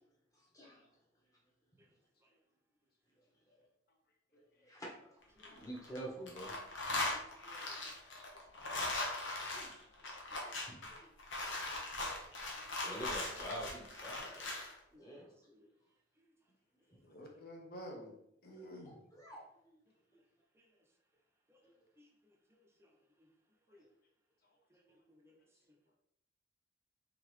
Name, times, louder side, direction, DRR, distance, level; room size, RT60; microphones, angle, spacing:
voice 1, 0.3-0.9 3.5-3.6 4.3-5.1 5.4-7.2 8.3-8.4 9.5-9.8 10.1-10.4 10.7-11.1 11.4-11.8 12.8-14.5 15.0-15.3 16.9-17.0 19.1-19.8 20.1-20.2, right 1 dB, 20° left, -3 dB, 1.1 m, -48 dB
sound 1, 5.2-6.0 6.3-14.7, left 2 dB, 85° left, 1.0 m, -40 dB
voice 2, 7.1-7.9 8.3-8.6 10.7-11.1 12.6-12.7 13.6-13.7 14.2-14.3 14.9-15.7 16.2-16.5 18.5-18.7 20.5-20.9 21.5-23.3 23.7-23.9 24.7-26.0, left 1 dB, 15° right, 1 dB, 0.6 m, -67 dB
voice 3, 17.0-18.2 18.4-19.0, equal, 55° left, 1 dB, 1.0 m, -49 dB
3.8 x 3.6 x 3.1 m, 0.77 s
head